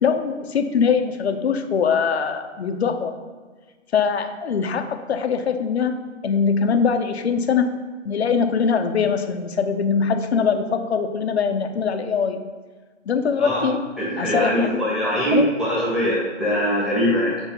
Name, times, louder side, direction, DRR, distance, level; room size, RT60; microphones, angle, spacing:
voice 1, 0.0-3.1 3.9-7.7 8.0-12.4 13.1-13.8 14.2-14.8 15.3-15.5, left 6 dB, 55° left, 7 dB, 0.8 m, -22 dB
voice 2, 14.0-17.4, equal, ahead, -8 dB, 1.5 m, -22 dB
7.3 x 3.5 x 5.5 m, 1.4 s
figure-of-eight pair, 130°, 38 cm